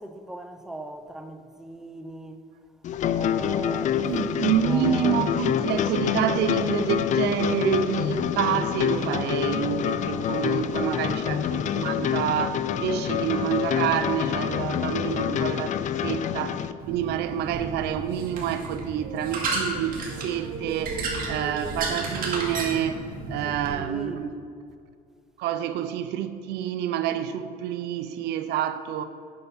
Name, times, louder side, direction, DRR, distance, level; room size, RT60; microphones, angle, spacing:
voice 1, 0.0-2.5 3.1-5.2 10.5-11.2 23.4-24.2, right 1 dB, 5° right, 0.5 m, -39 dB
sound 1, 2.8-16.7, left 9 dB, 45° left, 0.4 m, -26 dB
voice 2, 4.0-24.3 25.4-29.0, right 10 dB, 80° right, 0.5 m, -28 dB
sound 2, 16.8-23.7, right 3 dB, 60° right, 1.9 m, -32 dB
7.8 x 5.7 x 5.6 m
cardioid pair, 110°, 17 cm